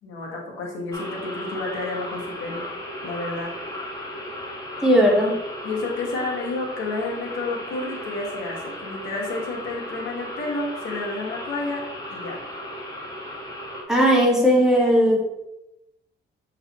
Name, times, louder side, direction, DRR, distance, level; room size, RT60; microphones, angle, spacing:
voice 1, 0.0-2.7 3.0-3.5 5.6-11.8 12.1-12.4, left 2 dB, 85° left, -2 dB, 1.7 m, -30 dB
sound 1, 0.9-13.8, left 1 dB, 15° left, 1.5 m, -36 dB
voice 2, 4.8-5.4 13.9-15.2, equal, 5° right, -3 dB, 1.8 m, -17 dB
8.0 x 3.9 x 3.0 m, 0.89 s
cardioid pair, 90°, 20 cm